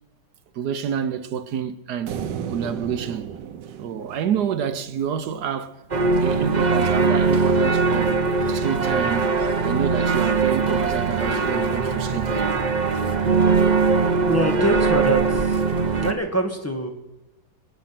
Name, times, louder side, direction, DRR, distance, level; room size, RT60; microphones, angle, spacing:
voice 1, 0.5-3.3 3.8-5.8 6.1-8.2 8.5-9.3 9.6-12.5, right 8 dB, 70° right, 1.3 m, -28 dB
sound 1, 2.1-5.4, right 8 dB, 90° right, 1.5 m, -34 dB
sound 2, 5.9-16.1, right 4 dB, 30° right, 0.9 m, -21 dB
voice 2, 14.0-15.6 16.0-16.9, right 1 dB, 10° left, 1.7 m, -25 dB
25.5 x 8.9 x 5.9 m
omnidirectional pair, 1.9 m